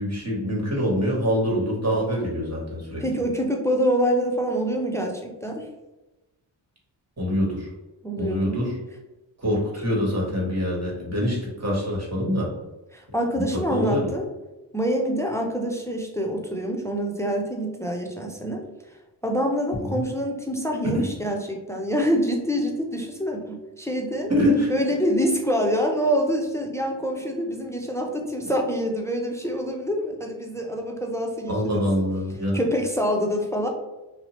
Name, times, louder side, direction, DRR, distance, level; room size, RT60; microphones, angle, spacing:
voice 1, 0.0-3.0 7.2-7.7 8.2-8.8 9.4-12.5 13.3-13.4 13.7-14.0 19.9-20.0 20.9-21.1 24.3-24.7 31.5-32.6, equal, 35° right, -3 dB, 1.3 m, -25 dB
voice 2, 3.0-5.7 8.0-8.6 12.9-14.3 14.7-18.6 19.2-24.3 24.7-31.8 32.5-33.7, equal, 5° left, 1 dB, 0.4 m, -26 dB
2.7 x 2.0 x 2.9 m, 1.0 s
cardioid pair, 40°, 48 cm